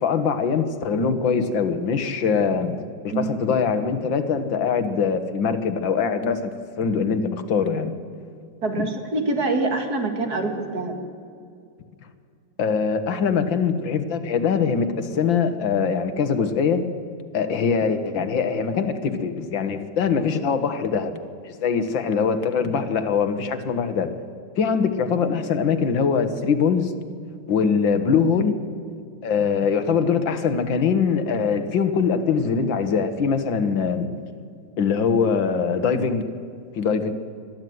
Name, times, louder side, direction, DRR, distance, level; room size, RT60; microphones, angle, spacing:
voice 1, 0.0-6.5 6.8-8.0 8.8-8.9 12.6-16.9 17.3-24.1 24.6-26.9 27.5-28.6 29.2-34.1 34.8-36.2 36.8-37.1, left 6 dB, 85° left, 9 dB, 2.1 m, -22 dB
voice 2, 8.6-11.0, right 2 dB, 55° right, 5 dB, 2.6 m, -25 dB
21.5 x 13.5 x 9.4 m, 2.3 s
omnidirectional pair, 2.0 m